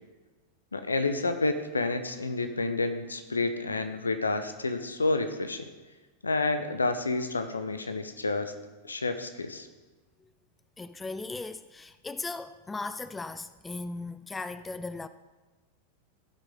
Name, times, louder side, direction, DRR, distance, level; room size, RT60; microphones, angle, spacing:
voice 1, 0.7-5.7 6.2-8.5 8.8-9.7, left 3 dB, 75° left, 0.8 m, -29 dB
voice 2, 10.8-15.1, left 3 dB, 10° left, 0.3 m, -37 dB
15.5 x 6.1 x 3.7 m
figure-of-eight pair, 90°, 0 cm